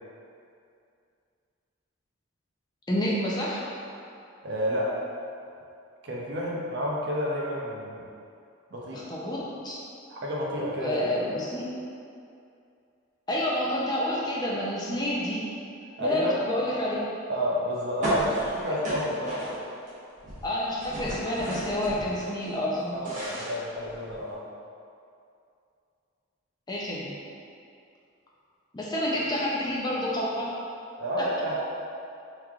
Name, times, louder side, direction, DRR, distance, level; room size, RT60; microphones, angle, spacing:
voice 1, 2.9-3.6 8.9-9.8 10.8-11.7 13.3-15.4 16.0-17.1 18.7-18.8 20.4-23.0 26.7-27.1 28.7-30.5 31.2-31.3, left 1 dB, 20° left, -6 dB, 0.4 m, -29 dB
voice 2, 4.4-5.0 6.0-8.0 8.7-9.1 10.1-11.1 16.0-16.3 17.3-19.6 22.9-24.4 31.0-31.6, equal, 55° right, -4 dB, 0.5 m, -30 dB
sound 1, 18.0-19.9 20.2-22.3 22.7-24.3, right 1 dB, 40° right, 0.9 m, -34 dB
3.6 x 3.1 x 2.3 m, 2.5 s
head